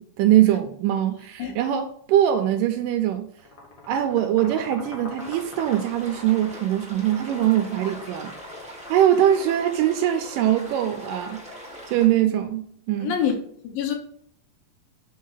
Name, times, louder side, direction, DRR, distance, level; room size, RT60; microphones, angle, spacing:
voice 1, 0.0-3.3 3.9-8.3 8.8-11.6 11.9-13.1, right 11 dB, 80° right, 2.1 m, -22 dB
sound 1, 3.4-9.1, left 2 dB, 45° left, 1.7 m, -44 dB
sound 2, 5.2-12.1, equal, 5° right, 0.8 m, -41 dB
voice 2, 13.0-13.3 13.6-14.0, left 9 dB, 80° left, 2.8 m, -25 dB
7.4 x 4.5 x 4.0 m
omnidirectional pair, 4.1 m